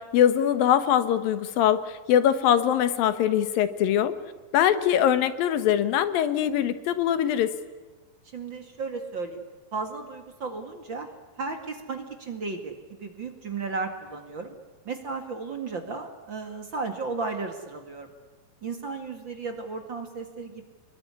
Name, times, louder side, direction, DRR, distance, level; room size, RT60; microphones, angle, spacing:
voice 1, 0.0-4.1 4.5-7.5, left 10 dB, 85° left, 11 dB, 3.0 m, -22 dB
voice 2, 8.3-9.4 9.7-11.1 11.4-14.5 14.9-18.1 18.6-20.6, right 4 dB, 40° right, 5 dB, 2.3 m, -34 dB
26.5 x 21.5 x 9.7 m, 1.3 s
omnidirectional pair, 4.0 m